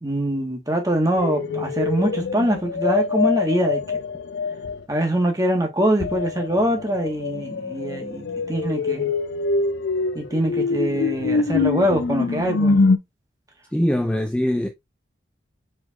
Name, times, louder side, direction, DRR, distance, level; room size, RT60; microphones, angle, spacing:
voice 1, 0.0-4.0 4.9-9.1 10.1-12.8, right 1 dB, 20° right, 1.2 m, -23 dB
sound 1, 1.2-4.8 6.0-13.0, left 4 dB, 75° left, 0.4 m, -24 dB
voice 2, 13.7-14.7, left 1 dB, 5° left, 0.3 m, -22 dB
4.6 x 4.4 x 2.3 m
head